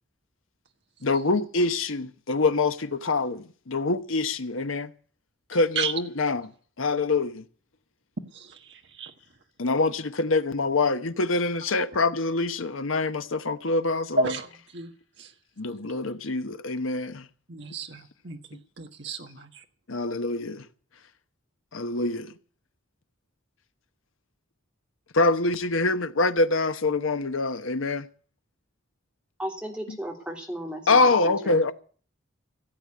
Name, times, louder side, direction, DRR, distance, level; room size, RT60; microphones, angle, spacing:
voice 1, 1.0-4.9 5.5-6.5 6.8-7.4 9.6-14.3 15.6-17.3 19.9-20.7 21.7-22.3 25.1-28.1 29.9-30.0 30.9-31.7, left 3 dB, 90° left, 1.1 m, -25 dB
voice 2, 8.3-9.1 14.2-14.9 15.2-15.3 17.5-19.6, right 3 dB, 60° right, 1.4 m, -32 dB
voice 3, 29.4-31.7, equal, 5° right, 3.0 m, -35 dB
16.5 x 8.3 x 8.5 m
head